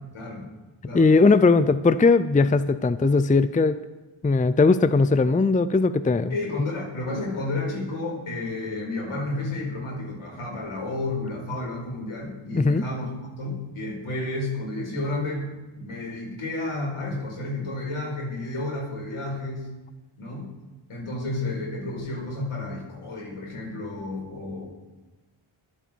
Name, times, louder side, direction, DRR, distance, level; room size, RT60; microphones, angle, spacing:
voice 1, 0.1-0.5 0.8-1.1 6.3-15.5 15.7-19.7 20.2-20.5 20.9-24.7, left 2 dB, 80° left, -2 dB, 5.3 m, -31 dB
voice 2, 0.9-3.8 4.2-6.3 12.5-12.8, left 3 dB, 15° left, 13 dB, 0.5 m, -19 dB
24.0 x 8.1 x 4.7 m, 1.2 s
cardioid pair, 65°, 49 cm